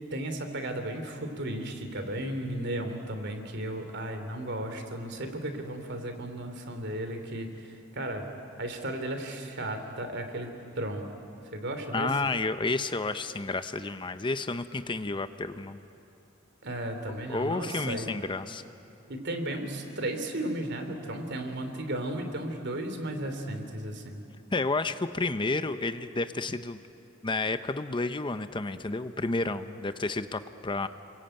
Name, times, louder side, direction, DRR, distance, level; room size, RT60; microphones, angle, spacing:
voice 1, 0.1-8.3 8.6-10.5 10.7-11.0 11.5-12.1 16.6-18.1 19.1-24.2, right 1 dB, 60° right, 6 dB, 3.0 m, -34 dB
voice 2, 11.9-15.8 17.3-18.6 24.5-26.8 27.2-30.9, left 3 dB, 25° left, 11 dB, 0.7 m, -31 dB
29.5 x 22.0 x 9.0 m, 2.7 s
head